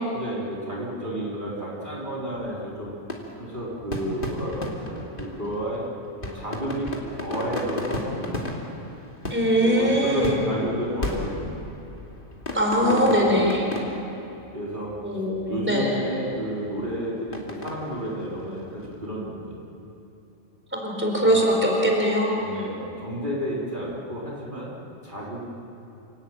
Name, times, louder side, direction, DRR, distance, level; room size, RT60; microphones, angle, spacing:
voice 1, 0.1-2.9 3.4-5.8 6.2-8.4 9.6-11.6 12.8-13.5 14.5-14.9 15.4-19.6 21.2-21.4 22.4-24.7 25.0-25.5, right 1 dB, 40° right, -6 dB, 4.2 m, -31 dB
sound 1, 2.4-19.1, left 1 dB, 45° left, 2.9 m, -36 dB
voice 2, 9.3-10.4 12.5-13.6 15.0-15.9 20.7-22.4, equal, 10° right, -1 dB, 4.3 m, -21 dB
29.0 x 18.0 x 9.0 m, 2.9 s
omnidirectional pair, 1.3 m